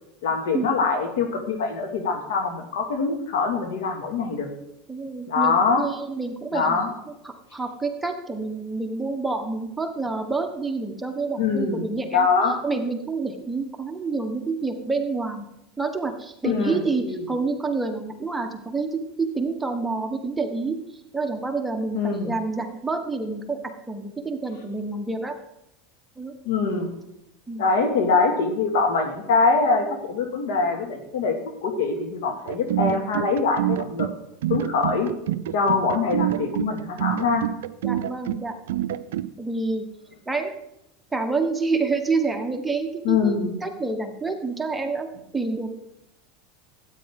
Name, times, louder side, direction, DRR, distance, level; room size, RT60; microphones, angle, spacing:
voice 1, 0.2-4.5 5.3-5.9 6.5-6.9 11.4-12.6 16.4-17.3 21.9-22.3 26.4-26.9 27.6-31.4 31.6-34.1 34.5-35.1 35.5-37.4 43.0-43.5, left 4 dB, 75° left, 4 dB, 2.1 m, -23 dB
voice 2, 4.9-6.8 7.2-12.3 12.6-15.5 15.8-20.8 21.1-25.4 26.2-26.4 27.5-27.7 37.8-38.6 39.4-39.8 40.2-40.5 41.1-45.1 45.3-45.7, right 3 dB, 10° right, 4 dB, 1.2 m, -28 dB
sound 1, 32.5-39.3, right 13 dB, 80° right, 0.4 m, -27 dB
12.5 x 9.1 x 3.7 m, 0.83 s
hypercardioid pair, 105°, 0 cm